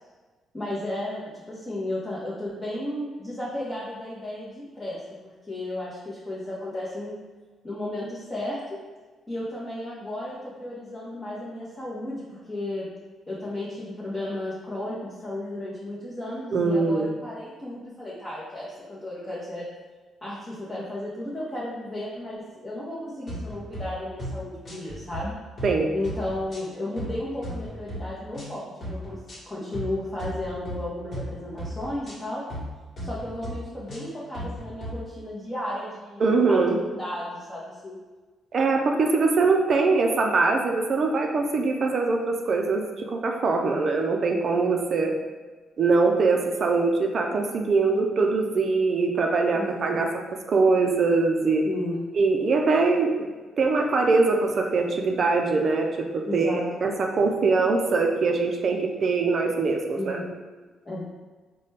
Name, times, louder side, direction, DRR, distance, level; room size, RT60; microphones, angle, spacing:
voice 1, 0.5-5.0 5.5-7.1 7.6-8.8 9.3-12.9 13.3-19.6 20.2-25.3 25.9-28.6 28.9-32.4 33.0-38.0 43.5-43.9 49.5-50.1 51.7-52.1 56.3-56.6 59.9-60.3 60.8-61.0, left 1 dB, 15° left, -9 dB, 0.9 m, -34 dB
voice 2, 16.5-17.1 25.6-25.9 36.2-36.8 38.5-45.1 45.8-50.1 50.5-51.6 52.2-53.3 53.6-60.2, right 3 dB, 50° right, 2 dB, 0.5 m, -22 dB
sound 1, 23.3-23.8 24.2-24.4 24.7-25.2 25.6-25.8 26.0-27.1 27.4-28.0 28.3-28.5 28.8-29.4 29.7-29.9 30.2-30.8 31.1-31.3 31.6-32.1 32.5-32.7 33.0-33.5 33.9-34.9, right 1 dB, 45° left, 1.4 m, -36 dB
4.0 x 2.2 x 3.3 m, 1.3 s
cardioid pair, 90°, 0 cm